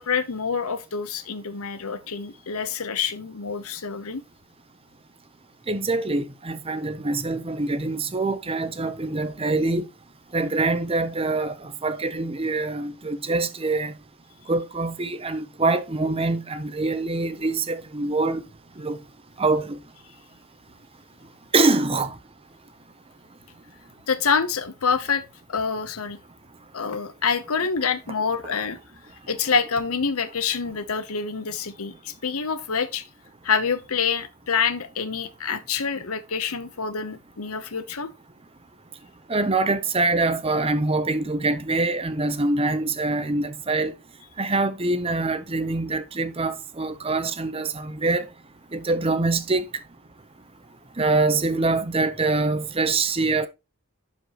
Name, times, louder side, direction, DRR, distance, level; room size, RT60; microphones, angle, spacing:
voice 1, 0.0-4.2 24.1-25.2 25.5-26.2 26.7-28.8 29.3-33.0 33.4-38.1, left 6 dB, 75° left, 0.9 m, -26 dB
voice 2, 5.7-9.9 10.3-13.9 14.5-18.4 18.8-19.0 19.4-19.8 21.5-22.1 39.3-43.9 44.4-48.3 48.7-49.6 51.0-53.5, right 3 dB, 25° right, 0.7 m, -24 dB
11.5 x 5.2 x 3.0 m
head